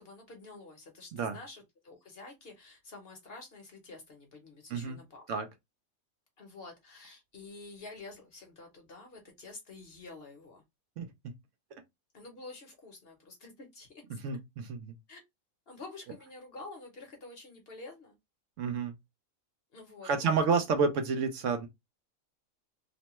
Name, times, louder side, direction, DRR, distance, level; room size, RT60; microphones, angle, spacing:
voice 1, 0.0-5.3 6.4-10.6 12.1-14.2 15.1-15.2 15.7-18.2 19.7-20.6, left 3 dB, 50° left, 0.9 m, -49 dB
voice 2, 14.1-14.9 18.6-18.9 20.0-21.7, right 5 dB, 70° right, 0.9 m, -30 dB
3.0 x 2.1 x 2.9 m
omnidirectional pair, 1.4 m